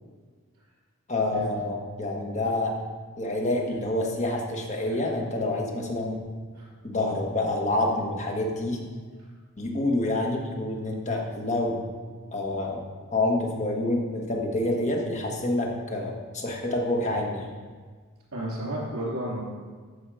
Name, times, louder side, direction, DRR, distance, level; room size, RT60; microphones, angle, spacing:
voice 1, 1.1-2.7 3.2-6.2 6.8-8.8 9.6-11.8 12.3-12.8 13.1-17.5, left 2 dB, 30° left, 0 dB, 1.5 m, -27 dB
voice 2, 18.3-19.4, right 1 dB, 75° right, -3 dB, 3.2 m, -32 dB
13.5 x 5.6 x 4.9 m, 1.5 s
head